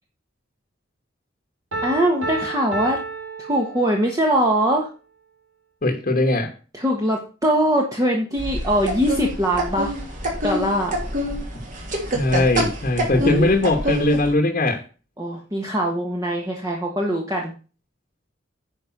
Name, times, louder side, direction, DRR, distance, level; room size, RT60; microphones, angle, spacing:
Piano, 1.7-4.3, right 2 dB, 85° right, 3.3 m, -31 dB
voice 1, 1.8-3.0 3.4-4.9 6.7-9.9 10.4-10.9 13.1-13.5 15.2-17.5, right 1 dB, 15° right, -1 dB, 1.4 m, -22 dB
voice 2, 5.8-6.5 12.1-14.8, left 2 dB, 45° left, 3 dB, 1.3 m, -20 dB
sound 1, 8.4-14.3, equal, 40° right, 3.2 m, -26 dB
10.0 x 5.3 x 5.9 m, 0.35 s
head